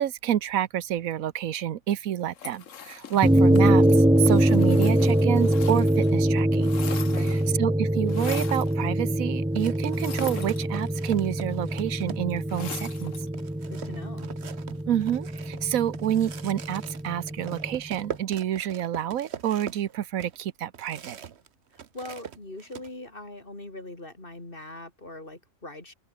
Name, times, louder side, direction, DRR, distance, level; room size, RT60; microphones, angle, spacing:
voice 1, 0.0-6.7 7.2-13.1 14.9-21.2, right 11 dB, 85° right, 1.3 m, -28 dB
sound 1, 2.3-6.1 6.4-7.6 8.1-8.7 9.9-11.1 12.5-13.3, left 7 dB, 65° left, 1.6 m, -41 dB
sound 2, 3.2-17.8, right 1 dB, 5° right, 0.6 m, -24 dB
voice 2, 7.1-7.5 13.7-14.3 21.7-25.9, left 2 dB, 40° left, 4.3 m, -42 dB
sound 3, 8.6-8.7 9.6-12.6 13.0-13.1 13.3-21.5 21.7-22.9, right 8 dB, 55° right, 1.2 m, -41 dB
omnidirectional pair, 1.4 m